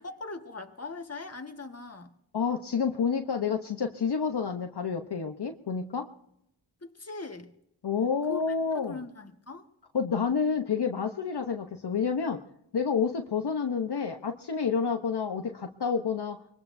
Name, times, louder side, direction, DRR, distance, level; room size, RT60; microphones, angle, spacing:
voice 1, 0.0-2.1 6.8-7.5 8.3-9.7, left 3 dB, 30° left, 5 dB, 1.7 m, -41 dB
voice 2, 2.3-6.1 7.8-9.0 9.9-12.4 12.7-16.4, left 6 dB, 55° left, 4 dB, 1.0 m, -29 dB
24.5 x 21.5 x 2.7 m, 0.80 s
cardioid pair, 55°, 48 cm